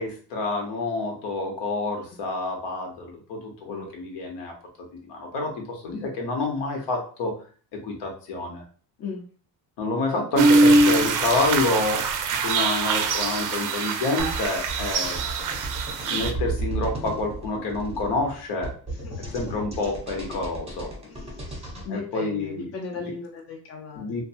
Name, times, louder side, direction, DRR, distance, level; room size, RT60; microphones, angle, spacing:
voice 1, 0.0-4.5 5.1-7.3 7.7-8.6 9.8-12.0 12.3-15.2 16.0-18.7 19.3-20.9 21.9-22.7 23.9-24.2, left 3 dB, 70° left, 1 dB, 1.0 m, -28 dB
sound 1, 10.4-16.3, right 3 dB, 45° right, 0.4 m, -22 dB
sound 2, 14.2-21.9, right 2 dB, 15° right, 0.8 m, -34 dB
voice 2, 21.0-24.2, left 5 dB, 35° left, 0 dB, 0.6 m, -37 dB
2.6 x 2.2 x 2.7 m, 0.41 s
cardioid pair, 115°, 43 cm